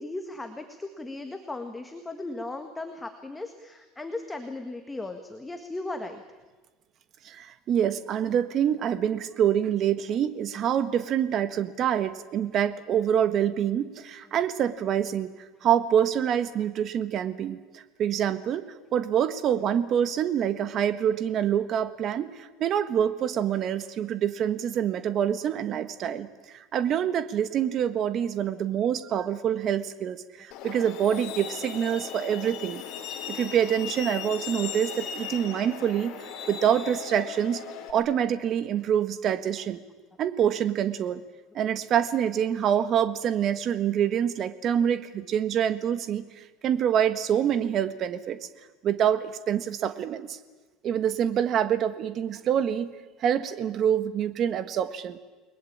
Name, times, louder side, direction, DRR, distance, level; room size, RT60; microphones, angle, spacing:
voice 1, 0.0-6.2, left 2 dB, 10° left, 6 dB, 1.7 m, -37 dB
voice 2, 7.2-15.3 15.6-18.7 18.9-26.3 26.7-32.8 33.3-36.1 36.5-39.8 40.2-41.2 41.5-46.2 46.6-48.4 48.8-50.4 50.8-52.9 53.2-55.2, right 9 dB, 35° right, 12 dB, 1.5 m, -26 dB
Truck, 30.5-37.9, left 8 dB, 50° left, 4.0 m, -37 dB
29.5 x 21.0 x 8.8 m, 1.3 s
cardioid pair, 155°, 0 cm